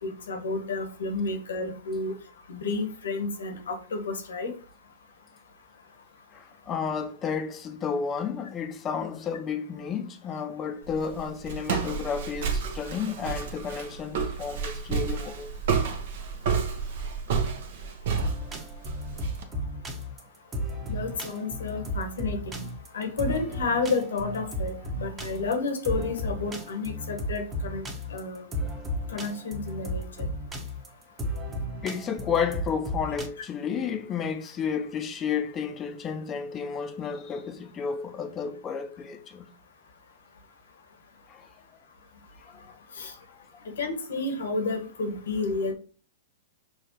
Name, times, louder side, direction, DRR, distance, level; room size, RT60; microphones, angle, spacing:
voice 1, 0.0-2.1 2.5-4.5 20.9-22.6 22.9-28.5 29.1-30.3 43.0-43.1 43.8-45.7, left 3 dB, 75° left, 1.1 m, -31 dB
voice 2, 6.3-15.5 31.8-39.5 41.3-41.5 42.5-42.7, left 6 dB, 25° left, 0.6 m, -32 dB
Walk footsteps, 10.8-19.4, right 6 dB, 60° right, 0.8 m, -30 dB
sound 1, 18.2-33.3, equal, 20° right, 0.9 m, -34 dB
5.9 x 2.4 x 2.9 m
hypercardioid pair, 110°, 0 cm